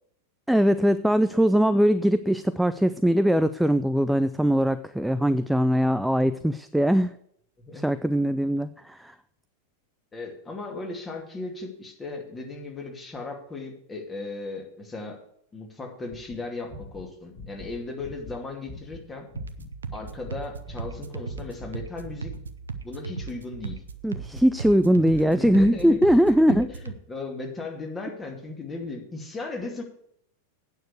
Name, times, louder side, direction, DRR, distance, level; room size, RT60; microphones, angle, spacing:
voice 1, 0.5-7.1 7.7-9.1 24.0-26.7, equal, ahead, 12 dB, 0.4 m, -21 dB
voice 2, 7.6-7.9 10.1-15.2 15.5-19.3 19.9-22.3 22.8-23.8 25.1-29.8, left 3 dB, 15° left, 1 dB, 2.5 m, -37 dB
sound 1, 16.3-19.0 19.3-21.7 22.0-22.4, left 3 dB, 35° left, 4.4 m, -43 dB
sound 2, 19.3-27.0, right 5 dB, 70° right, 0.8 m, -37 dB
9.2 x 6.6 x 8.2 m, 0.70 s
figure-of-eight pair, 90°, 0 cm